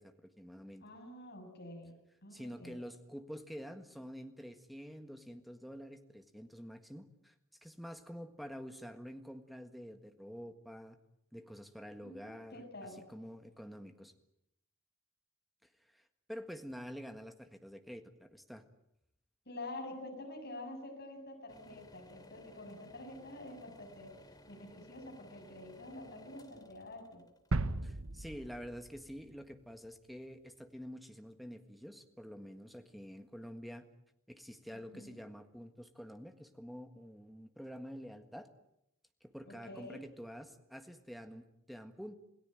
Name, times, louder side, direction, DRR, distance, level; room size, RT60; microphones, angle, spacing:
voice 1, 0.0-0.8 2.3-7.3 7.6-11.0 11.3-12.6 13.1-14.1 15.9-16.0 16.3-18.6 27.8-33.9 34.3-38.5 39.2-42.2, equal, ahead, 7 dB, 1.6 m, -48 dB
voice 2, 0.8-1.9 2.2-2.7 12.0-13.0 19.5-27.3 34.9-35.1 39.5-40.0, left 1 dB, 50° left, 1 dB, 7.1 m, -48 dB
sound 1, 21.5-28.4, left 1 dB, 20° left, 2.6 m, -59 dB
sound 2, 27.5-29.4 29.8-29.9, right 2 dB, 75° right, 1.0 m, -37 dB
28.0 x 18.0 x 9.0 m, 0.80 s
head